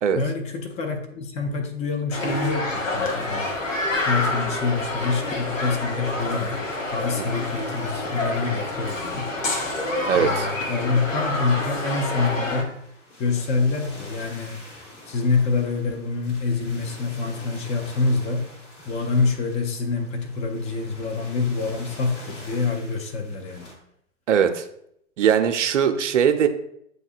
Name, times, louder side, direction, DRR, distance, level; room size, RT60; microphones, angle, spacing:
voice 1, 0.1-3.6 4.0-6.7 6.9-9.3 10.1-12.7 13.2-14.6 15.1-18.5 18.9-23.7, left 4 dB, 20° left, 4 dB, 0.5 m, -26 dB
sound 1, 2.1-12.6, left 2 dB, 85° left, 0.8 m, -27 dB
sound 2, 7.0-23.7, left 1 dB, 70° left, 1.3 m, -46 dB
voice 2, 10.1-10.5 24.3-24.6 25.2-26.5, right 8 dB, 70° right, 8 dB, 0.6 m, -20 dB
7.8 x 2.6 x 2.4 m, 0.73 s
figure-of-eight pair, 100°, 38 cm